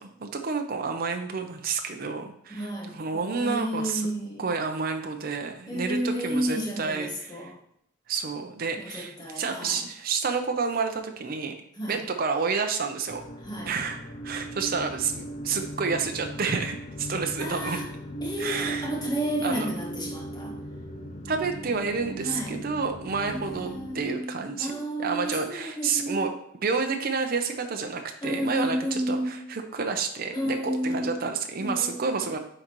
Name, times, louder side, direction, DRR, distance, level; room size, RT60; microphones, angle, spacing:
voice 1, 0.0-2.7 2.9-4.0 4.4-7.5 8.1-11.5 11.9-13.2 13.7-14.0 14.2-17.8 18.4-18.9 19.4-19.7 21.2-24.7 25.0-26.3 26.6-32.4, right 5 dB, 50° right, 5 dB, 0.6 m, -29 dB
voice 2, 2.5-4.4 5.7-7.6 8.8-9.8 11.7-12.0 13.4-13.8 17.4-17.9 18.2-20.6 22.2-22.6 23.2-26.3 28.2-29.4 30.3-31.2 31.6-32.1, equal, 20° left, -2 dB, 1.5 m, -32 dB
sound 1, 13.1-24.0, right 1 dB, 40° left, 0.6 m, -38 dB
9.7 x 3.8 x 3.0 m, 0.73 s
head